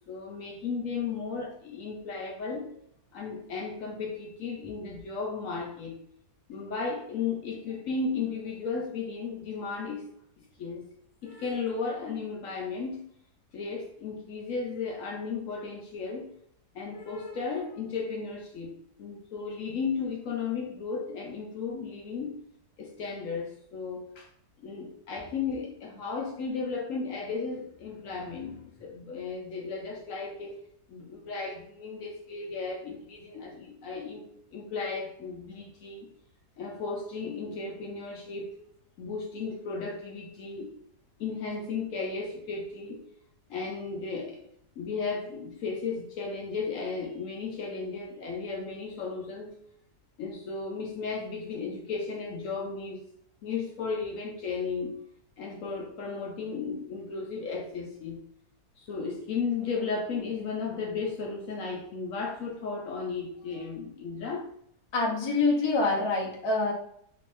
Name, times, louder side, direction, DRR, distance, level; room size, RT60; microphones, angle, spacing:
voice 1, 0.1-2.7 3.1-6.0 6.5-10.1 10.4-10.8 11.2-13.0 13.5-16.3 16.7-22.4 22.8-24.3 24.6-30.6 30.9-36.1 36.6-38.5 39.0-40.7 41.2-43.0 43.5-44.5 44.8-49.6 50.2-53.0 53.4-55.0 55.4-58.2 58.8-64.5, left 4 dB, 70° left, 1 dB, 0.8 m, -35 dB
voice 2, 64.9-66.7, left 3 dB, 40° left, -3 dB, 0.4 m, -26 dB
3.5 x 3.1 x 2.5 m, 0.69 s
omnidirectional pair, 1.7 m